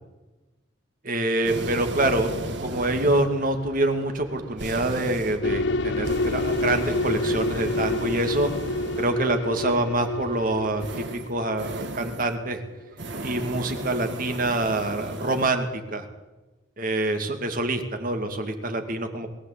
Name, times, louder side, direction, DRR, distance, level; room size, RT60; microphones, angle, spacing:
voice 1, 1.0-2.3 2.6-8.5 9.0-12.6 13.2-16.1 16.8-19.3, right 2 dB, 45° right, 6 dB, 2.4 m, -26 dB
sound 1, 1.4-9.4 10.8-12.4 12.9-15.5, right 1 dB, 60° right, 1.9 m, -35 dB
sound 2, 5.4-12.5, left 2 dB, 60° left, 0.6 m, -29 dB
22.5 x 14.0 x 8.5 m, 1.1 s
head